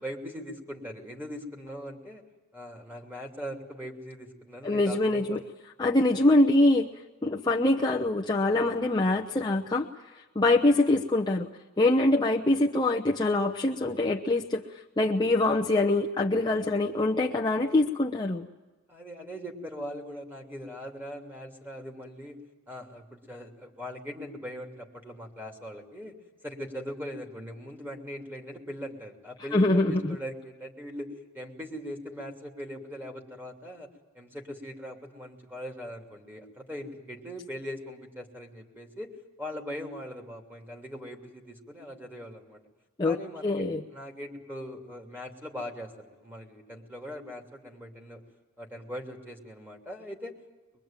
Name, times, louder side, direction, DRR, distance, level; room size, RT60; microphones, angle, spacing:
voice 1, 0.0-2.2 2.5-5.4 18.9-22.4 22.7-26.1 26.4-33.9 34.1-42.6 43.0-48.2 48.6-50.3, equal, 10° right, 2 dB, 3.0 m, -40 dB
voice 2, 4.6-5.4 5.8-6.9 7.2-9.9 10.3-11.5 11.8-18.5 29.5-30.2 43.0-43.2 43.4-43.8, left 2 dB, 20° left, 0 dB, 0.8 m, -24 dB
23.0 x 22.5 x 9.0 m, 1.1 s
head